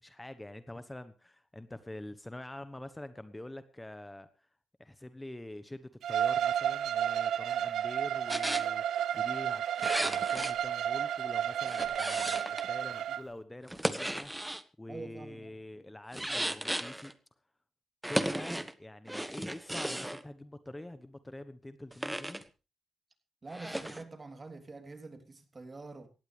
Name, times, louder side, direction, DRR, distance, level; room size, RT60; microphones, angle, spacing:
voice 1, 0.0-4.5 4.8-9.6 10.0-17.1 18.1-22.4, left 1 dB, 15° left, 12 dB, 1.1 m, -46 dB
Bowed string instrument, 6.0-13.2, right 10 dB, 75° right, 0.7 m, -32 dB
sound 1, 8.3-8.7 9.8-10.5 11.6-12.7 13.6-14.6 16.1-17.1 18.0-18.7 19.1-20.2 21.9-22.4 23.5-24.0, right 1 dB, 5° right, 1.5 m, -35 dB
voice 2, 14.9-15.5 23.4-26.1, right 3 dB, 35° right, 6 dB, 3.3 m, -46 dB
18.0 x 14.5 x 3.4 m, 0.31 s
supercardioid pair, 55°, 0 cm